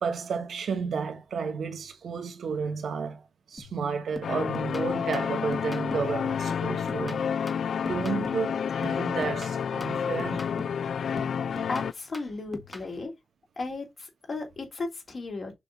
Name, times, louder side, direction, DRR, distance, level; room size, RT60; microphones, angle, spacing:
voice 1, 0.0-3.2 3.5-7.3 7.9-10.5, right 5 dB, 85° right, 1.3 m, -32 dB
sound 1, 3.6-3.8 4.2-6.2 6.5-8.5 8.8-10.9 11.2-12.9, left 2 dB, 15° left, 1.5 m, -43 dB
sound 2, 4.2-11.9, left 7 dB, 80° left, 0.3 m, -30 dB
voice 2, 11.7-13.1 13.6-15.5, left 3 dB, 50° left, 3.0 m, -35 dB
6.7 x 3.1 x 5.2 m
wide cardioid pair, 95°, 0 cm